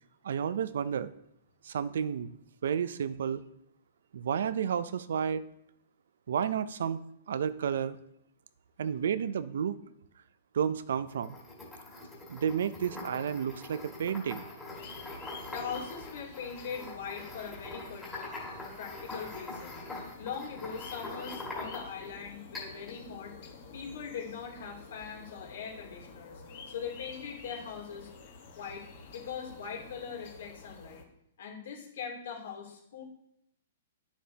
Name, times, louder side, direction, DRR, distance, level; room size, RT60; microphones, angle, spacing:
voice 1, 0.2-1.1 1.6-3.4 4.1-5.4 6.3-7.0 7.3-8.0 8.8-9.8 10.5-11.4 12.3-14.5, right 8 dB, 70° right, 15 dB, 0.5 m, -31 dB
sound 1, 11.1-22.1 22.5-23.0, left 2 dB, 10° left, 2.0 m, -43 dB
sound 2, 14.7-31.0, left 4 dB, 45° left, 1.4 m, -50 dB
voice 2, 15.5-19.8 20.2-23.3 23.7-28.1 28.6-31.0 31.4-33.0, left 6 dB, 70° left, -1 dB, 2.8 m, -41 dB
10.5 x 7.2 x 2.8 m, 0.75 s
hypercardioid pair, 170°, 0 cm